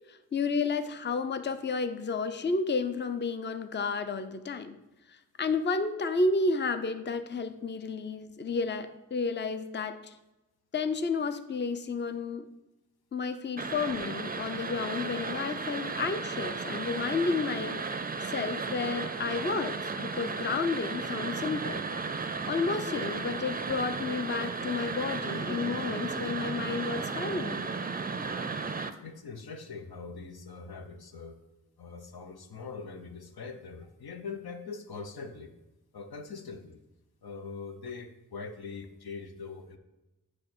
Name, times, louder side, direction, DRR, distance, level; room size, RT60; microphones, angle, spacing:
voice 1, 0.1-4.8 5.1-10.2 10.7-12.5 13.1-17.8 18.2-21.8 22.4-27.7, left 4 dB, 30° left, 10 dB, 0.5 m, -31 dB
sound 1, 13.6-28.9, right 4 dB, 25° right, 0.4 m, -34 dB
voice 2, 29.0-31.4 31.8-35.5 35.9-36.8 37.2-39.8, left 4 dB, 85° left, 6 dB, 0.8 m, -42 dB
8.8 x 3.1 x 6.0 m, 1.0 s
wide cardioid pair, 70°, 36 cm